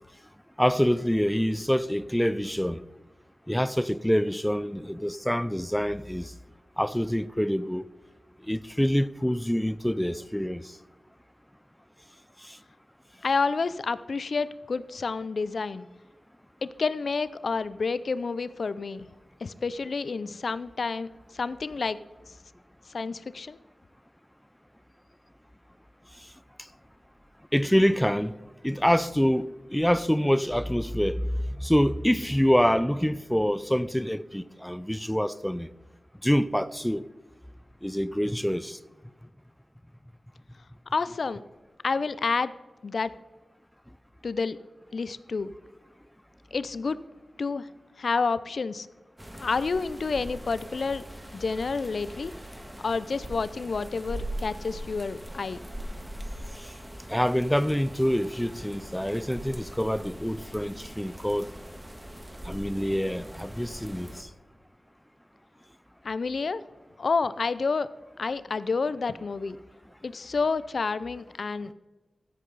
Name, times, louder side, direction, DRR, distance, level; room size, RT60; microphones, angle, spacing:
voice 1, 0.6-2.8 3.5-6.3 6.8-7.8 8.5-10.7 27.5-28.3 28.6-31.3 31.6-35.7 36.2-37.0 37.8-38.8 57.1-61.5 62.5-64.1, equal, 5° left, 0.4 m, -26 dB
voice 2, 13.2-15.9 16.6-19.1 19.4-21.1 21.3-22.0 22.9-23.6 40.9-41.4 41.8-42.5 42.8-43.1 44.2-44.6 44.9-45.5 46.5-47.0 47.4-47.7 48.0-48.9 49.4-51.0 51.3-52.3 52.8-55.6 66.0-66.6 67.0-67.9 68.2-69.6 70.0-71.7, left 4 dB, 70° left, 0.5 m, -29 dB
sound 1, 49.2-64.2, right 1 dB, 10° right, 1.6 m, -41 dB
15.0 x 8.3 x 4.0 m
wide cardioid pair, 70°, 0 cm